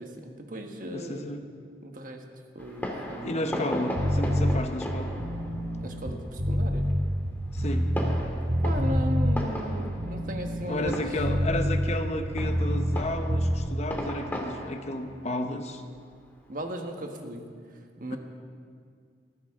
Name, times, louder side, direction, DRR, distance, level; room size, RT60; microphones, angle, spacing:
voice 1, 0.0-1.3 1.8-2.2 2.5-3.8 5.8-6.8 8.6-11.2 16.5-17.4 18.0-18.2, right 1 dB, 50° right, 4 dB, 1.4 m, -36 dB
voice 2, 0.9-1.5 3.2-5.2 7.5-8.0 10.7-15.8 18.1-18.2, left 1 dB, 40° left, 6 dB, 0.9 m, -32 dB
Fireworks, 2.6-16.7, equal, 10° left, 1.9 m, -38 dB
sound 1, 4.0-4.6 5.1-8.2 8.5-9.4 9.9-13.0 13.3-13.6, equal, 70° right, 1.9 m, -26 dB
19.5 x 14.5 x 3.7 m, 2.1 s
head